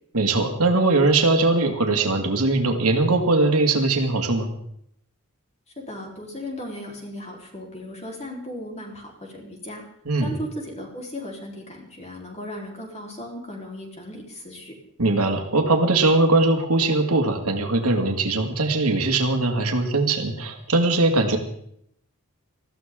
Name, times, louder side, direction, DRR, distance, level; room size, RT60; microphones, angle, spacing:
voice 1, 0.1-4.5 10.1-10.3 15.0-21.4, right 2 dB, 75° right, 4 dB, 2.3 m, -21 dB
voice 2, 5.8-9.8 10.2-14.8, left 1 dB, 30° left, 0 dB, 3.9 m, -36 dB
20.0 x 15.0 x 3.8 m, 0.71 s
head